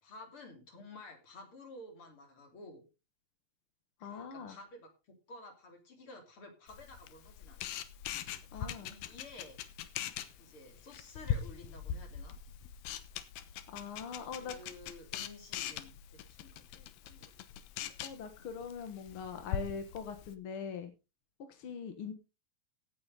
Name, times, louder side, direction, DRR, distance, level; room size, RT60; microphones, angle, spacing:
voice 1, 0.0-2.8 4.0-7.7 8.4-9.6 10.4-12.4 14.4-17.3, left 2 dB, 40° left, 4 dB, 3.7 m, -52 dB
voice 2, 4.0-4.6 8.5-8.9 13.7-14.6 18.0-20.9 21.5-22.1, left 6 dB, 60° left, 8 dB, 1.5 m, -42 dB
Camera, 6.7-20.3, left 9 dB, 75° left, 2.7 m, -42 dB
16.5 x 8.9 x 4.0 m, 0.30 s
omnidirectional pair, 4.1 m